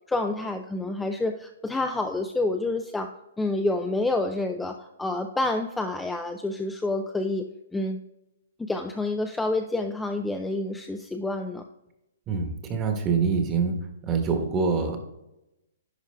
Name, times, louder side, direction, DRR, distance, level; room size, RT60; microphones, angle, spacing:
voice 1, 0.1-8.0 8.6-11.6, left 2 dB, 5° left, 5 dB, 0.3 m, -28 dB
voice 2, 12.3-13.7 14.0-15.0, right 5 dB, 20° right, 5 dB, 1.2 m, -25 dB
10.5 x 4.8 x 3.4 m, 0.90 s
hypercardioid pair, 155°, 0 cm